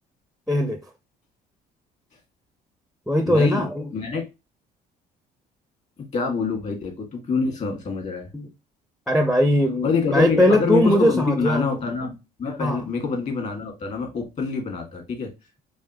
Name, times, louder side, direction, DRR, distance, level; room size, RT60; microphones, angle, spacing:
voice 1, 0.5-0.8 3.1-3.9 8.3-8.5 9.1-11.7 12.6-12.8, equal, ahead, 0.4 m, -20 dB
voice 2, 3.3-4.2 6.1-8.3 9.8-15.3, left 4 dB, 45° left, 1.7 m, -26 dB
4.1 x 2.8 x 2.7 m
cardioid pair, 110°, 17 cm